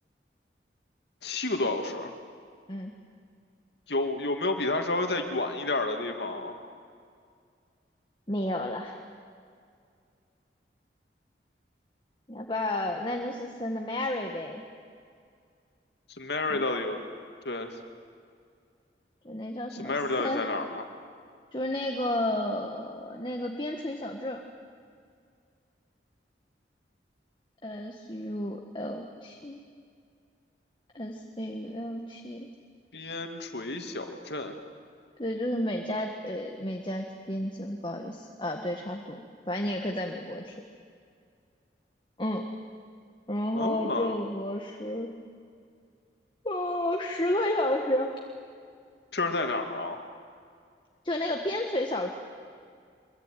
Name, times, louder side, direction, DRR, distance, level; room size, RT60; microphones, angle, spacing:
voice 1, 1.2-2.1 3.9-6.6 16.2-17.0 17.4-17.7 19.8-20.9 32.9-34.5 43.5-44.2 49.1-50.0, left 2 dB, 70° left, 4 dB, 2.5 m, -30 dB
voice 2, 8.3-9.0 12.3-14.6 16.5-16.6 19.2-19.9 20.2-20.4 21.5-24.4 27.6-29.6 30.9-32.5 35.2-40.6 42.2-42.5 43.3-45.1 46.4-48.2 51.0-52.1, left 1 dB, 25° left, 2 dB, 1.6 m, -31 dB
24.5 x 23.0 x 9.3 m, 2.2 s
head